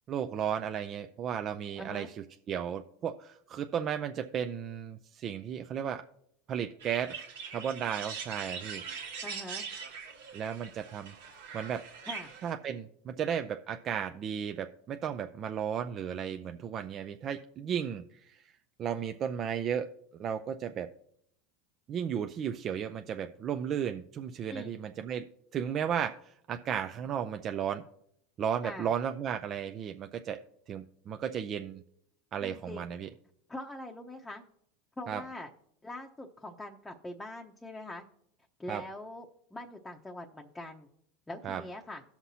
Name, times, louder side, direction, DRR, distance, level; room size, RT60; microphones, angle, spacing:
voice 1, 0.1-6.0 6.5-7.3 7.5-8.8 10.3-11.1 11.5-11.8 12.4-18.5 18.8-19.9 20.2-20.9 21.9-25.3 25.5-27.8 28.4-30.4 30.7-31.8 32.3-33.1 35.1-35.2 38.7-38.8 41.4-41.6, right 8 dB, 40° right, 7 dB, 0.5 m, -34 dB
voice 2, 1.8-2.1 9.2-9.6 12.1-12.3 24.5-24.8 28.6-28.9 32.4-32.9 33.5-34.4 35.0-35.5 35.8-38.0 38.6-39.3 39.5-40.9 41.3-42.0, left 1 dB, 10° left, 0 dB, 0.8 m, -43 dB
sound 1, 6.8-12.5, right 6 dB, 90° right, 1.6 m, -42 dB
17.0 x 5.8 x 2.8 m, 0.71 s
supercardioid pair, 115°, 0 cm